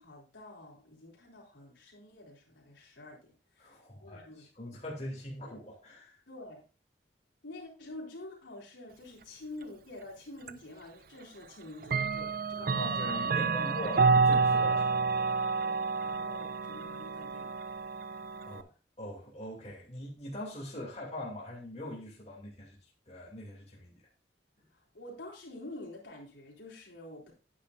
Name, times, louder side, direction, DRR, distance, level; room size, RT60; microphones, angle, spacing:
voice 1, 0.0-4.5 6.3-6.6 7.4-13.2 13.5-13.8 15.6-17.5 24.7-27.3, left 2 dB, 80° left, -2 dB, 3.8 m, -48 dB
voice 2, 3.6-6.2 12.6-15.5 18.5-18.7 19.0-22.8 23.1-23.9, left 1 dB, 35° left, -4 dB, 2.7 m, -42 dB
Clock, 10.5-10.6 11.8-18.6, right 4 dB, 50° right, 0.4 m, -29 dB
10.0 x 9.4 x 2.6 m, 0.35 s
head